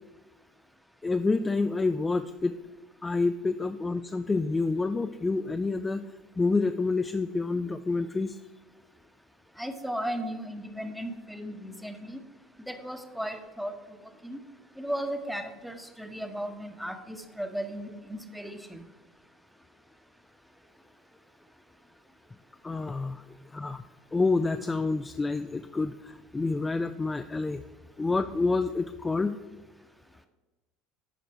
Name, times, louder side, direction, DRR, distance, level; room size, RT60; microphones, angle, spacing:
voice 1, 1.0-2.5 3.0-6.0 6.4-8.4 22.6-23.2 23.5-23.8 24.1-27.6 28.0-29.4, left 3 dB, 15° left, 8 dB, 0.4 m, -28 dB
voice 2, 9.6-12.2 12.6-13.7 14.2-14.4 14.8-18.8, equal, ahead, 7 dB, 0.9 m, -36 dB
11.5 x 5.0 x 4.4 m, 1.2 s
figure-of-eight pair, 70°, 0 cm